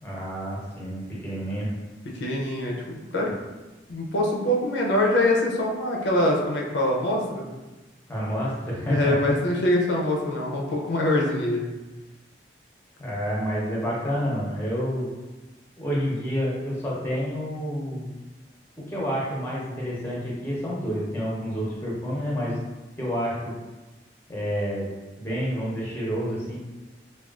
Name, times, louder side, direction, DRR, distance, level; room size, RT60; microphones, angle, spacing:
voice 1, 0.0-1.7 8.1-9.2 13.0-15.1 15.8-18.1 18.9-22.6 23.0-23.6 24.3-24.9 25.2-26.6, equal, 10° left, -5 dB, 0.7 m, -29 dB
voice 2, 2.1-3.3 3.9-7.4 8.8-11.7, left 1 dB, 80° left, -1 dB, 0.5 m, -24 dB
3.5 x 2.3 x 2.3 m, 1.1 s
head